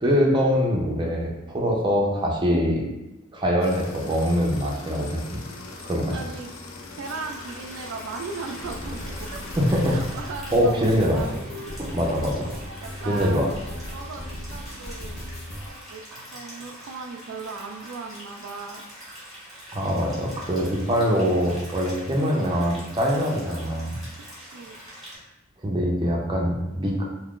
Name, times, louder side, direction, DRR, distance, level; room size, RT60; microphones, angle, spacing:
voice 1, 0.0-2.8 3.3-5.4 5.8-6.2 9.6-10.2 10.5-11.2 11.8-12.7 13.0-13.5 19.7-24.0 25.6-27.0, equal, 25° right, -2 dB, 0.5 m, -23 dB
sound 1, 3.6-10.2, left 3 dB, 80° left, 0.5 m, -41 dB
voice 2, 6.1-6.5 7.0-9.4 9.9-11.3 12.8-13.6 13.9-15.2 15.9-18.8 24.1-24.8, right 4 dB, 80° right, 4 dB, 0.3 m, -37 dB
sound 2, 7.0-25.1, equal, ahead, 1.1 m, -44 dB
sound 3, 8.6-15.7, equal, 50° left, 0.8 m, -37 dB
2.7 x 2.4 x 3.6 m, 0.96 s
head